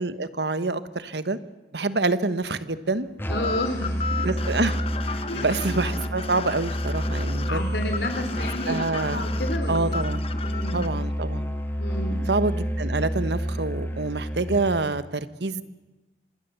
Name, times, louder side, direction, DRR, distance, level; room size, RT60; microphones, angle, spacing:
voice 1, 0.0-1.4 1.7-3.1 4.2-4.8 5.0-7.6 8.4-9.2 9.7-10.2 10.7-11.5 12.3-15.6, right 3 dB, 80° right, 13 dB, 1.3 m, -27 dB
Musical instrument, 3.2-14.9, equal, 10° left, 1.9 m, -29 dB
voice 2, 3.3-4.3 5.3-5.7 7.5-10.9 11.8-12.2, left 1 dB, 85° left, 5 dB, 3.4 m, -32 dB
sound 1, 3.4-10.9, left 4 dB, 35° left, 1.1 m, -34 dB
26.0 x 20.0 x 7.0 m, 1.1 s
head